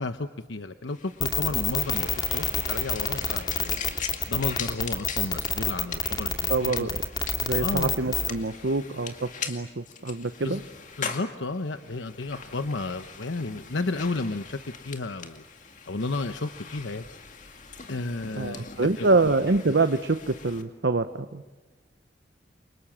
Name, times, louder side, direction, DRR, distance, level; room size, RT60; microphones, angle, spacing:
voice 1, 0.0-3.7 4.3-6.9 7.6-8.0 10.4-10.6 11.0-14.6 14.8-15.4 15.9-17.0 17.9-19.1, left 3 dB, 90° left, 8 dB, 1.0 m, -32 dB
sound 1, 0.9-20.6, left 6 dB, 45° left, 2.2 m, -41 dB
sound 2, 1.2-8.3, left 6 dB, 20° left, 2.4 m, -27 dB
voice 2, 6.5-7.0 7.4-10.6 18.4-21.4, right 3 dB, 70° right, 10 dB, 0.9 m, -25 dB
29.5 x 25.0 x 7.4 m, 1.2 s
head